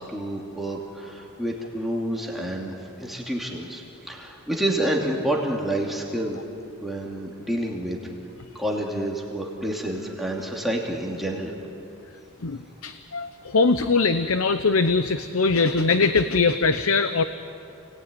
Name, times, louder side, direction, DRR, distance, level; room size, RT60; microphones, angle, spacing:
voice 1, 0.0-6.4 6.8-8.0 8.5-11.6, right 1 dB, ahead, -2 dB, 2.7 m, -28 dB
voice 2, 12.4-17.2, left 4 dB, 70° left, 10 dB, 0.8 m, -22 dB
29.5 x 19.5 x 9.7 m, 2.8 s
head